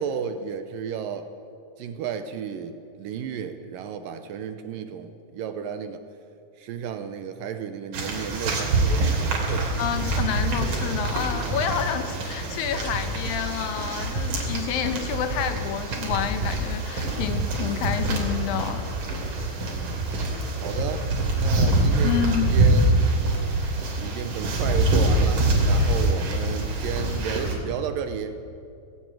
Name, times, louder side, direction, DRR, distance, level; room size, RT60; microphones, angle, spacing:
voice 1, 0.0-1.3 1.8-6.0 6.6-10.2 14.9-15.1 19.7-20.1 20.6-21.1 21.4-23.2 24.0-28.4, right 7 dB, 75° right, 9 dB, 2.2 m, -33 dB
sound 1, 7.9-27.6, right 2 dB, 55° right, 4.3 m, -25 dB
voice 2, 9.8-18.8 22.0-22.5, left 8 dB, 70° left, 8 dB, 2.6 m, -29 dB
17.5 x 16.5 x 9.0 m, 2.6 s
omnidirectional pair, 4.5 m